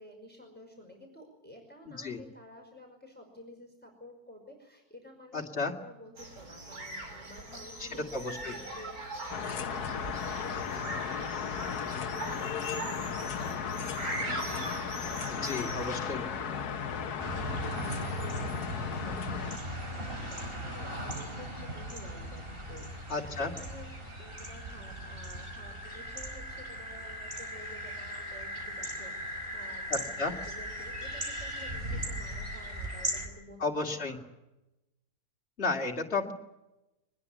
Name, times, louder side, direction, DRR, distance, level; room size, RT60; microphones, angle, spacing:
voice 1, 0.0-15.6 16.1-34.3, left 1 dB, 5° left, 1 dB, 5.4 m, -51 dB
voice 2, 1.9-2.2 5.3-5.7 7.8-8.5 15.3-16.2 23.1-23.5 29.9-30.3 33.6-34.2 35.6-36.3, left 3 dB, 45° left, 1 dB, 2.8 m, -33 dB
sound 1, 6.2-16.1, right 2 dB, 70° right, 4.5 m, -41 dB
sound 2, 9.3-19.6, left 7 dB, 85° left, 1.6 m, -35 dB
sound 3, 17.2-33.3, equal, 35° right, 5.4 m, -38 dB
24.0 x 20.5 x 8.4 m, 0.97 s
omnidirectional pair, 1.6 m